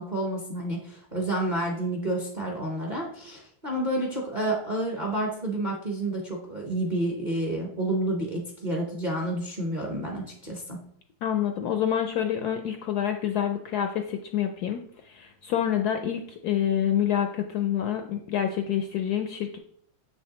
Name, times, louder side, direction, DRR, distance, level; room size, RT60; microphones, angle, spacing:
voice 1, 0.0-10.8, right 1 dB, 35° right, -1 dB, 0.7 m, -29 dB
voice 2, 11.2-19.6, left 9 dB, 75° left, 5 dB, 0.9 m, -27 dB
7.2 x 6.3 x 2.9 m, 0.66 s
omnidirectional pair, 2.1 m